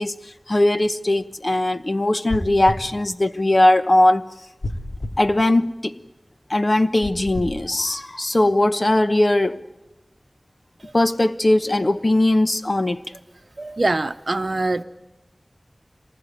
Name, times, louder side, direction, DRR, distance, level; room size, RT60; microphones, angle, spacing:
voice 1, 0.0-4.2 5.2-6.0 6.5-9.6 10.9-13.0, left 1 dB, 45° left, 10 dB, 1.1 m, -19 dB
sound 1, 2.3-2.9 4.6-5.2 7.0-7.5, left 1 dB, 80° left, 3.4 m, -30 dB
voice 2, 13.6-14.8, right 2 dB, 65° right, 11 dB, 0.8 m, -23 dB
26.0 x 19.5 x 9.3 m, 1.0 s
wide cardioid pair, 50°, 0 cm